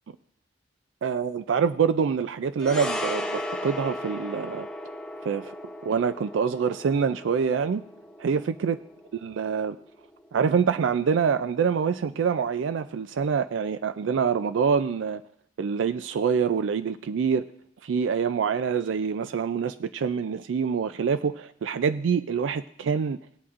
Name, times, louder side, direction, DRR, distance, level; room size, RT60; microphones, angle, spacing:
voice 1, 1.0-4.7 5.2-5.5 5.8-7.8 8.2-8.8 9.2-9.8 10.3-15.2 15.6-17.4 17.8-23.2, right 6 dB, 85° right, 12 dB, 0.4 m, -25 dB
sound 1, 2.6-11.1 11.3-11.5, left 1 dB, 5° left, 0.8 m, -36 dB
19.0 x 8.4 x 2.5 m, 0.70 s
head